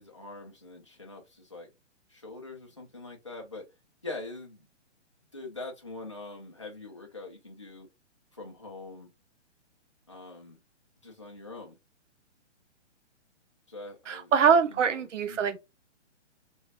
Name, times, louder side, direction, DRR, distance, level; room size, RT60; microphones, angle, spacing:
voice 1, 0.0-1.7 2.1-3.7 4.0-4.7 5.3-7.9 8.3-9.1 10.1-10.6 11.0-11.8 13.7-15.4, left 2 dB, 25° left, 0.3 m, -43 dB
voice 2, 14.1-15.6, right 6 dB, 85° right, 0.7 m, -23 dB
3.0 x 2.3 x 2.8 m
hypercardioid pair, 170°, 36 cm